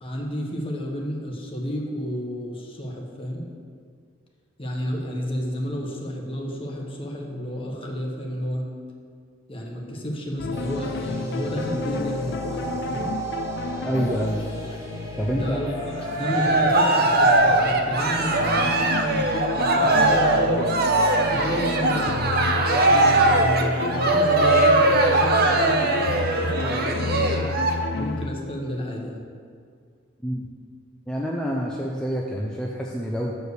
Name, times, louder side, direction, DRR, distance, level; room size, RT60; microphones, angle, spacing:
voice 1, 0.0-3.5 4.6-8.7 9.5-13.1 15.3-15.7 16.1-20.7 21.3-27.6 27.9-29.2, equal, 30° left, 0 dB, 1.1 m, -31 dB
sound 1, 10.4-28.3, left 4 dB, 60° left, 0.4 m, -32 dB
sound 2, 10.5-17.4, right 1 dB, 15° right, 1.4 m, -34 dB
voice 2, 13.8-14.4 15.2-15.6 30.2-30.5 31.1-33.4, equal, 5° left, -3 dB, 0.5 m, -27 dB
Cheering, 16.0-27.7, right 2 dB, 50° right, 0.6 m, -20 dB
6.8 x 4.5 x 6.5 m, 2.2 s
head